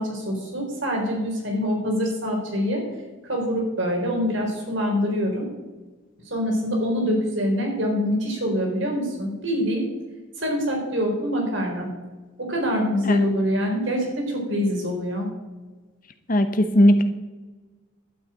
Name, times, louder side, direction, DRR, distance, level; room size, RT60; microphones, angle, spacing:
voice 1, 0.0-2.8 3.3-5.5 6.2-9.9 10.4-11.9 12.4-15.3, equal, 60° right, 0 dB, 4.2 m, -25 dB
voice 2, 16.3-17.0, equal, 40° left, 8 dB, 0.9 m, -18 dB
12.0 x 6.7 x 8.9 m, 1.3 s
head